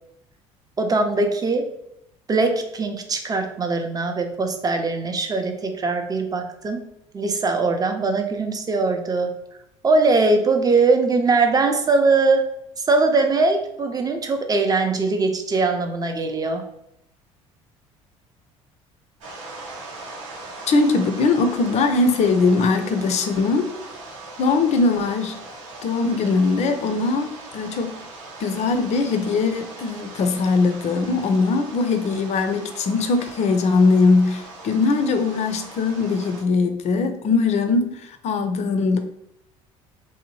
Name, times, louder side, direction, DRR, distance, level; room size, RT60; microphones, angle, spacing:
voice 1, 0.8-1.7 2.3-6.8 7.1-9.3 9.8-12.5 12.8-16.6, right 3 dB, 25° right, 5 dB, 0.5 m, -21 dB
sound 1, 19.2-36.4, right 3 dB, 80° right, 0.7 m, -40 dB
voice 2, 20.7-23.7 24.4-25.4 25.8-28.0 28.4-39.0, left 4 dB, 45° left, 8 dB, 0.4 m, -21 dB
2.7 x 2.1 x 3.0 m, 0.79 s
hypercardioid pair, 60°, 16 cm